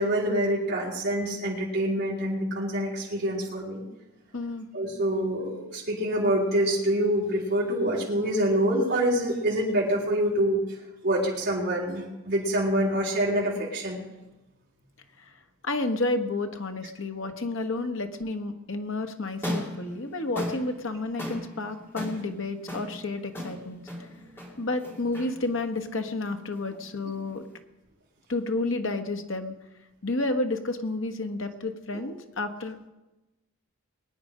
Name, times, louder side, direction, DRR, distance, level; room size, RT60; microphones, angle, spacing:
voice 1, 0.0-3.8 4.7-10.8 11.0-14.0 31.9-32.0, right 1 dB, 50° right, -5 dB, 3.9 m, -26 dB
voice 2, 4.3-4.7 15.2-15.3 15.6-23.8 24.6-27.4 28.3-29.5 30.0-32.9, left 2 dB, 70° left, 6 dB, 1.3 m, -31 dB
sound 1, 19.3-27.6, equal, 10° left, 2.7 m, -38 dB
22.0 x 9.8 x 5.1 m, 1.0 s
head